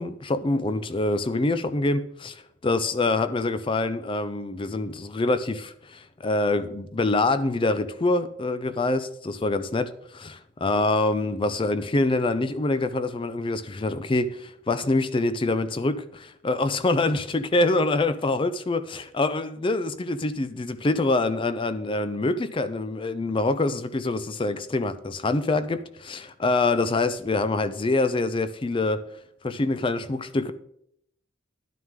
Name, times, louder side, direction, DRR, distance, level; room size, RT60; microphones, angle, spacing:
voice 1, 0.0-29.0 29.4-30.5, left 2 dB, 25° left, 0.4 m, -25 dB
11.0 x 9.3 x 3.7 m
head